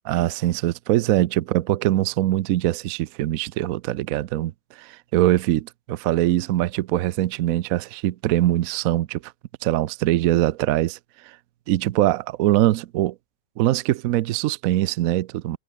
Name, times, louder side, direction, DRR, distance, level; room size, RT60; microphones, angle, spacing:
voice 1, 0.1-9.3 9.6-11.0 11.2-11.4 11.7-13.1 13.6-15.6, right 14 dB, 75° right, 0.7 m, -22 dB
omnidirectional pair, 2.1 m